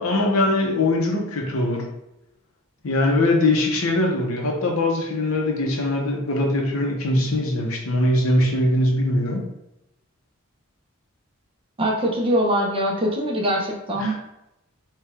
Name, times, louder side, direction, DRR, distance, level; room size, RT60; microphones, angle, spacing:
voice 1, 0.0-1.9 2.8-9.5 14.0-14.2, left 1 dB, 80° left, 1 dB, 0.8 m, -21 dB
voice 2, 11.8-14.1, equal, 25° right, -1 dB, 0.7 m, -22 dB
4.3 x 2.3 x 3.5 m, 0.88 s
head